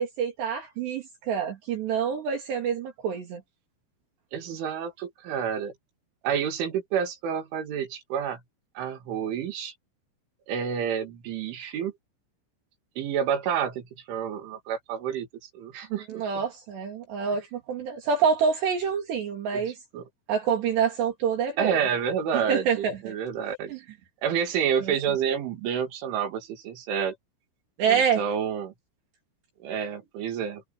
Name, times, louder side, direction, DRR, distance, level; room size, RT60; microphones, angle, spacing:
voice 1, 0.0-3.4 16.1-19.8 20.3-21.9 22.3-23.1 23.7-23.8 24.8-24.9 27.8-28.2, right 6 dB, 65° right, 4.8 m, -27 dB
voice 2, 4.3-5.7 6.2-8.4 8.8-9.7 10.5-11.9 13.0-15.3 15.5-16.4 19.5-19.6 19.9-20.0 21.6-23.7 24.2-27.1 27.9-28.7 29.6-30.6, right 8 dB, 90° right, 5.1 m, -29 dB
omnidirectional pair, 5.4 m